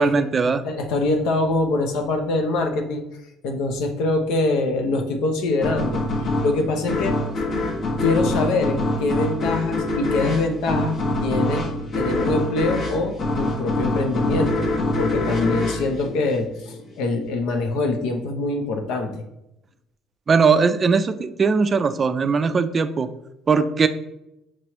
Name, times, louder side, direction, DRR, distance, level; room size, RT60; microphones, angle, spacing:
voice 1, 0.0-0.6 20.3-23.1 23.5-23.9, right 5 dB, 35° right, 11 dB, 0.3 m, -19 dB
voice 2, 0.6-3.0 3.4-7.2 8.0-11.0 11.2-11.7 11.9-14.7 15.0-19.2, left 2 dB, 80° left, 5 dB, 0.7 m, -24 dB
sound 1, 5.6-16.9, left 2 dB, 60° left, 1.1 m, -25 dB
5.9 x 3.1 x 2.9 m, 0.88 s
supercardioid pair, 90°, 0 cm